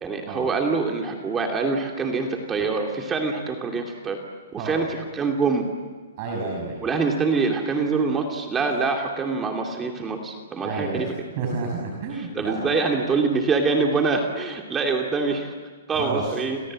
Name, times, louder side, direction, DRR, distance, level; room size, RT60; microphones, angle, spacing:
voice 1, 0.0-4.2 4.5-5.6 6.8-11.1 12.1-15.5 15.9-16.6, right 4 dB, 15° right, 2 dB, 2.6 m, -25 dB
voice 2, 4.6-4.9 6.2-6.8 10.6-12.7 15.9-16.3, right 3 dB, 40° right, 0 dB, 6.4 m, -30 dB
28.5 x 27.0 x 7.6 m, 1.4 s
hypercardioid pair, 145°, 0 cm